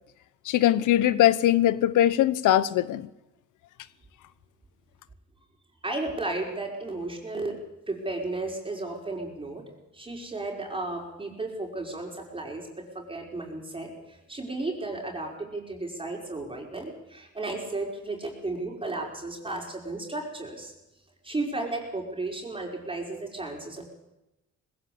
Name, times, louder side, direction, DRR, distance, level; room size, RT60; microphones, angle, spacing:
voice 1, 0.5-3.1, left 13 dB, 80° left, 0.9 m, -21 dB
voice 2, 5.8-7.6 7.9-9.6 9.9-20.7 21.2-23.8, right 2 dB, 15° right, 5.2 m, -34 dB
20.5 x 16.0 x 8.6 m
cardioid pair, 90°, 30 cm